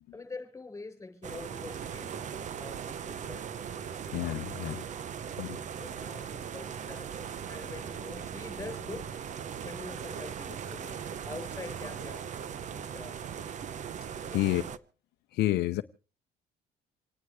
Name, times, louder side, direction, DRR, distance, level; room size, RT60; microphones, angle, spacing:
voice 1, 0.1-4.9 5.8-9.1 9.6-12.3 12.7-13.2 14.3-14.8, left 3 dB, 15° left, 7.1 m, -46 dB
sound 1, 1.2-14.8, right 8 dB, 45° right, 0.9 m, -39 dB
voice 2, 4.1-4.8 5.4-5.6 14.3-14.6 15.3-15.8, left 16 dB, 75° left, 0.7 m, -29 dB
27.5 x 9.7 x 4.7 m
cardioid pair, 110°, 17 cm